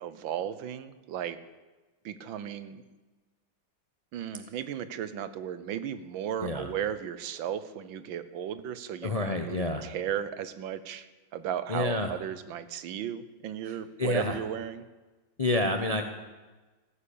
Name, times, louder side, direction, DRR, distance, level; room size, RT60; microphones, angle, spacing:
voice 1, 0.0-1.4 2.0-2.8 4.1-11.1 11.3-14.8, right 9 dB, 75° right, 13 dB, 1.6 m, -35 dB
voice 2, 6.4-6.7 9.0-9.8 11.7-12.1 13.6-14.4 15.4-16.0, left 2 dB, 30° left, 6 dB, 0.6 m, -29 dB
15.0 x 10.0 x 8.5 m, 1.2 s
omnidirectional pair, 2.1 m